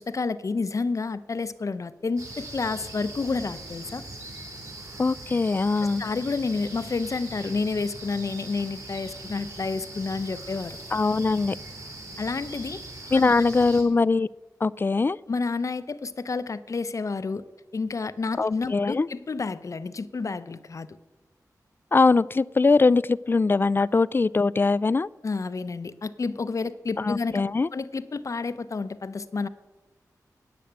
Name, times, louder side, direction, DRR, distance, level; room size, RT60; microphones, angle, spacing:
voice 1, 0.0-4.0 5.8-10.8 12.2-12.8 13.3-13.4 15.3-17.4 17.7-20.9 25.2-27.4 27.7-29.5, left 4 dB, 50° left, 14 dB, 0.7 m, -30 dB
sound 1, 2.2-13.8, right 2 dB, 55° right, 3.7 m, -41 dB
voice 2, 5.0-6.0 10.9-11.6 13.1-14.3 14.6-15.2 18.4-19.1 21.9-25.1 27.0-27.7, left 3 dB, 30° left, 20 dB, 0.3 m, -22 dB
10.5 x 9.2 x 8.8 m, 1.2 s
wide cardioid pair, 80°, 7 cm